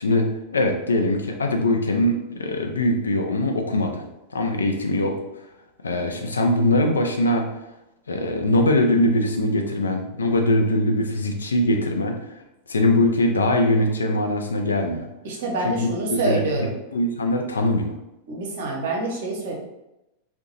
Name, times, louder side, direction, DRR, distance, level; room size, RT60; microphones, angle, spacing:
voice 1, 0.0-4.0 4.3-5.2 5.8-7.5 8.1-12.2 12.7-15.1 15.6-16.7 16.9-17.9, left 1 dB, 75° left, 3 dB, 0.3 m, -22 dB
voice 2, 15.2-16.8 18.3-19.5, right 2 dB, 55° right, -1 dB, 0.7 m, -26 dB
2.6 x 2.1 x 2.7 m, 0.92 s
figure-of-eight pair, 90°, 0 cm